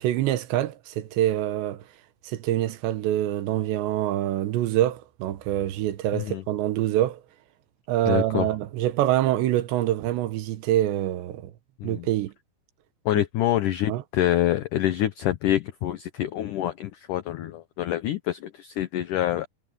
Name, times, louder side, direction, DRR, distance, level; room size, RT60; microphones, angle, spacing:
voice 1, 0.0-1.8 2.2-7.2 7.9-11.5 11.8-12.3 13.9-14.0, right 13 dB, 85° right, 3.4 m, -25 dB
voice 2, 6.1-6.4 8.1-8.5 11.8-12.1 13.1-19.5, left 13 dB, 80° left, 1.8 m, -26 dB
omnidirectional pair, 5.0 m